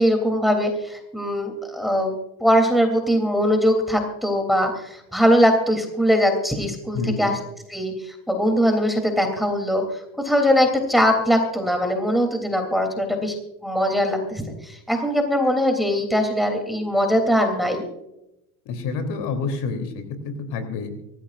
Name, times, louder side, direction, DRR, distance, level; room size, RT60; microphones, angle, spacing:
voice 1, 0.0-2.1 2.4-7.4 7.7-9.8 10.2-13.3 13.6-17.9, equal, ahead, 4 dB, 3.2 m, -21 dB
voice 2, 6.9-7.3 18.6-20.0 20.5-20.9, left 4 dB, 55° left, 6 dB, 3.4 m, -27 dB
24.0 x 14.5 x 2.6 m, 0.87 s
supercardioid pair, 115°, 49 cm